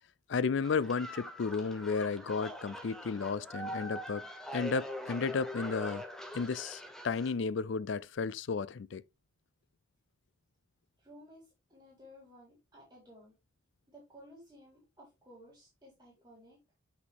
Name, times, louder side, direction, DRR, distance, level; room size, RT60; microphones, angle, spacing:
voice 1, 0.3-4.2 4.5-6.0 6.3-9.0, left 5 dB, 75° left, 0.4 m, -33 dB
sound 1, 0.6-7.3, equal, 5° left, 1.1 m, -43 dB
voice 2, 11.0-13.3 13.9-16.6, equal, 20° right, 3.8 m, -56 dB
7.8 x 6.1 x 3.4 m
head